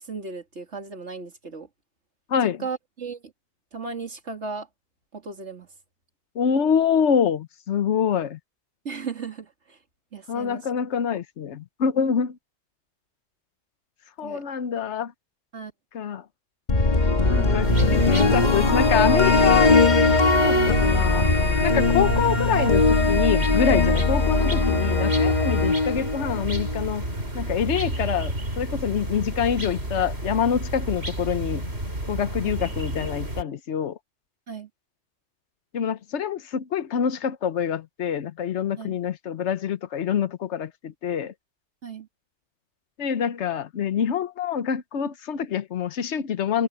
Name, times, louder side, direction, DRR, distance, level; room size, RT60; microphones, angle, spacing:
voice 1, 0.0-1.7 2.4-3.3 3.7-4.7 5.1-5.7 8.8-9.8 10.1-10.6 14.2-14.4 15.5-15.7 34.5-34.7 38.8-39.0 41.8-42.1, right 4 dB, 85° right, 2.8 m, -36 dB
voice 2, 6.3-8.4 10.3-12.4 14.2-15.1 15.9-16.2 17.3-19.7 20.4-21.3 21.6-27.0 27.3-31.7 32.1-34.0 35.7-41.3 43.0-46.7, left 8 dB, 80° left, 1.2 m, -26 dB
sound 1, 16.7-26.9, left 3 dB, 40° left, 1.6 m, -20 dB
sound 2, 17.6-33.4, right 1 dB, 65° right, 6.4 m, -31 dB
omnidirectional pair, 1.2 m